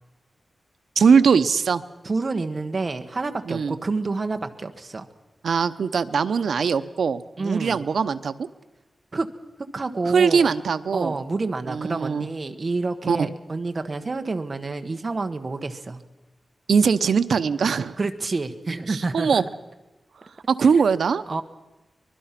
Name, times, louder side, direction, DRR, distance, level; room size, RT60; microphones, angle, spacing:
voice 1, 1.0-1.8 3.5-3.7 5.4-8.5 10.1-11.1 11.7-12.3 13.1-13.3 16.7-18.0 18.9-19.4 20.5-21.2, right 6 dB, 90° right, 12 dB, 0.8 m, -21 dB
voice 2, 2.0-5.1 7.4-7.8 9.1-9.3 9.7-10.5 10.9-16.0 18.0-19.5 21.3-21.4, right 3 dB, 35° right, 7 dB, 1.4 m, -28 dB
24.0 x 21.5 x 6.0 m, 1.1 s
wide cardioid pair, 155°, 0 cm